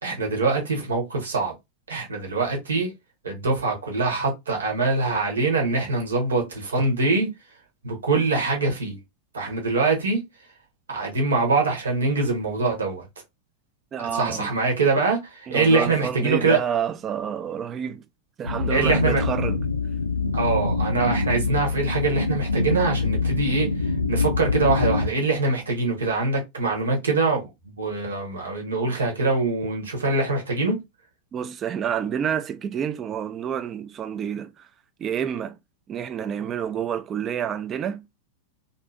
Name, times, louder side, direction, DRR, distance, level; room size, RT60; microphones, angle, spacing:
voice 1, 0.0-1.5 1.9-2.9 3.2-7.3 7.8-9.0 9.3-10.2 10.9-13.1 14.1-16.6 18.7-19.2 20.3-23.8 24.1-30.8, right 3 dB, 70° right, 1.1 m, -24 dB
voice 2, 13.9-14.6 15.5-18.1 18.4-19.6 31.3-34.7 35.0-35.6 35.9-38.1, right 8 dB, 25° right, 0.4 m, -28 dB
sound 1, 18.5-25.1, left 4 dB, 85° left, 0.5 m, -24 dB
2.6 x 2.6 x 2.3 m
figure-of-eight pair, 90°, 0 cm